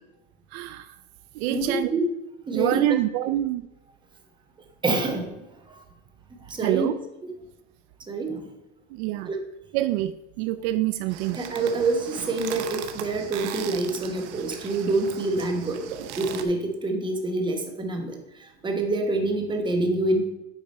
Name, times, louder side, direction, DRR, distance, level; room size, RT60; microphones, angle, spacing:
voice 1, 0.5-0.9 1.4-1.9 2.5-3.6 6.6-7.0 8.9-9.3 9.7-11.4, right 14 dB, 65° right, 12 dB, 0.5 m, -26 dB
voice 2, 1.5-2.1 2.5-2.8 4.8-5.3 5.7-5.8 6.4-6.9 8.1-8.5 9.3-9.4 11.3-15.8 16.2-20.3, right 2 dB, 15° right, 4 dB, 1.1 m, -26 dB
sound 1, 11.1-16.4, right 10 dB, 80° right, 0.9 m, -38 dB
8.9 x 4.9 x 4.2 m, 0.98 s
supercardioid pair, 150°, 35 cm